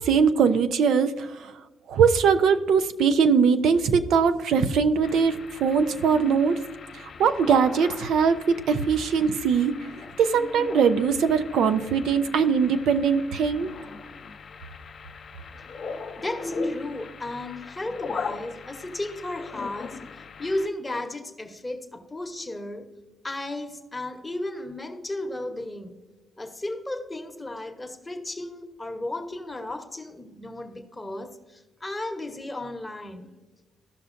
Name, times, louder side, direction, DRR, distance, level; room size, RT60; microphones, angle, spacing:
voice 1, 0.0-1.5 1.9-6.6 6.9-9.7 10.2-13.7, right 6 dB, 75° right, 0.5 m, -21 dB
sound 1, 5.0-20.7, left 4 dB, 55° left, 0.9 m, -38 dB
voice 2, 16.1-22.9 23.2-25.9 26.4-33.3, left 1 dB, 15° left, 1.0 m, -34 dB
14.0 x 5.7 x 2.6 m
cardioid pair, 90°, 0 cm